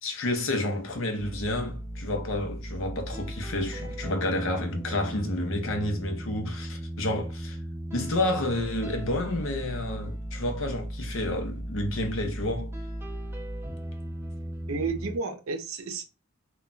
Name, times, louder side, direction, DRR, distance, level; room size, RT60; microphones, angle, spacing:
voice 1, 0.0-7.6 7.9-12.7, left 1 dB, 65° left, 0.7 m, -30 dB
sound 1, 1.2-15.2, right 1 dB, 10° right, 0.4 m, -36 dB
voice 2, 14.7-16.0, right 4 dB, 75° right, 0.5 m, -31 dB
2.3 x 2.1 x 3.8 m
head